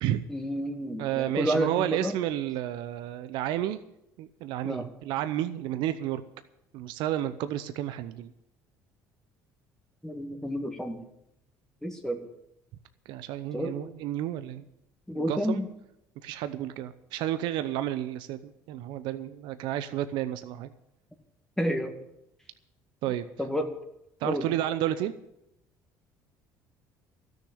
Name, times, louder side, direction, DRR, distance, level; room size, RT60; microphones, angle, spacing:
voice 1, 0.3-2.2 4.6-4.9 10.0-11.0 11.8-12.2 13.5-13.7 15.1-15.7 21.6-21.9 23.4-23.7 24.2-24.5, equal, 5° left, 4 dB, 2.0 m, -30 dB
voice 2, 1.0-3.8 4.2-6.2 6.7-8.3 13.1-14.6 15.1-15.6 16.2-20.7 23.0-23.3 24.2-25.1, right 12 dB, 75° right, 11 dB, 0.7 m, -31 dB
13.0 x 6.5 x 9.9 m, 0.83 s
supercardioid pair, 80°, 8 cm